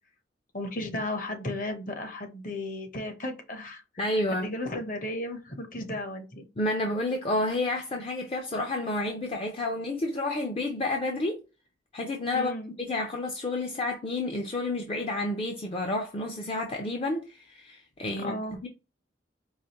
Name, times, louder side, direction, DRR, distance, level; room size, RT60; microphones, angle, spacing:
voice 1, 0.5-3.8 4.3-6.5 12.3-12.7 18.2-18.6, left 1 dB, 45° left, 0.9 m, -34 dB
voice 2, 4.0-4.5 6.6-11.4 11.9-12.5 12.9-18.7, left 2 dB, 30° left, 0.5 m, -30 dB
4.8 x 2.5 x 2.9 m
head